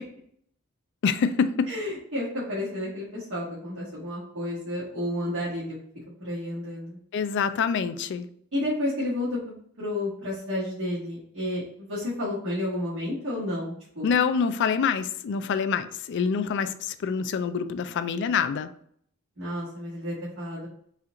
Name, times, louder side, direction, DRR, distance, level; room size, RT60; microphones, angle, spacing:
voice 1, 1.0-1.7 7.1-8.3 14.0-18.7, left 6 dB, 55° left, 11 dB, 0.3 m, -26 dB
voice 2, 1.7-5.8 6.2-7.0 8.5-14.1 19.4-20.7, left 1 dB, 75° right, -9 dB, 1.5 m, -31 dB
4.3 x 2.4 x 3.7 m, 0.65 s
head